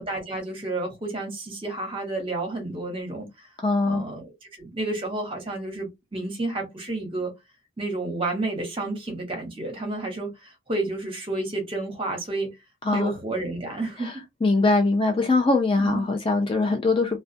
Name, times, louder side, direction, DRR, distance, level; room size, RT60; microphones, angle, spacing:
voice 1, 0.0-3.3 3.8-7.3 7.8-12.6 12.9-14.2 15.8-16.1, right 2 dB, 25° right, 0.9 m, -31 dB
voice 2, 3.6-4.1 12.8-13.1 14.0-14.1 14.4-17.2, left 3 dB, 25° left, 0.3 m, -22 dB
2.2 x 2.2 x 2.5 m
head